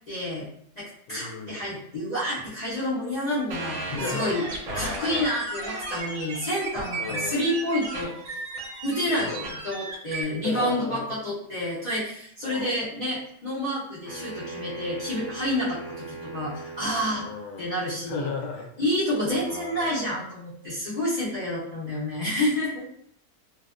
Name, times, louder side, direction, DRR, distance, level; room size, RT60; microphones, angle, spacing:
voice 1, 0.1-0.5 0.8-3.8 4.1-4.5 4.7-8.4 8.8-17.2 17.6-18.3 18.8-22.9, equal, 50° left, -10 dB, 0.5 m, -29 dB
voice 2, 1.1-1.7 3.9-4.3 4.7-5.3 7.0-7.5 9.1-9.5 10.4-11.1 12.4-12.7 17.2-17.7 18.0-18.8 19.2-20.2, left 5 dB, 80° left, 1 dB, 1.1 m, -35 dB
sound 1, 3.5-10.2, right 2 dB, 70° right, 1.0 m, -34 dB
sound 2, 14.0-17.4, right 3 dB, 25° right, 0.6 m, -39 dB
2.7 x 2.0 x 2.4 m, 0.68 s
omnidirectional pair, 1.6 m